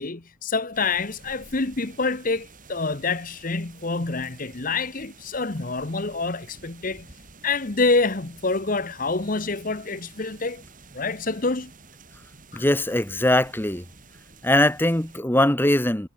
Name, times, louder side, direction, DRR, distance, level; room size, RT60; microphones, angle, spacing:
voice 1, 0.0-7.1 7.4-10.6 10.9-11.7 12.5-12.7, left 3 dB, 40° left, 1.1 m, -27 dB
sound 1, 0.7-15.2, right 3 dB, 40° right, 7.4 m, -50 dB
voice 2, 12.5-13.8 14.4-16.1, left 1 dB, 10° left, 1.2 m, -21 dB
head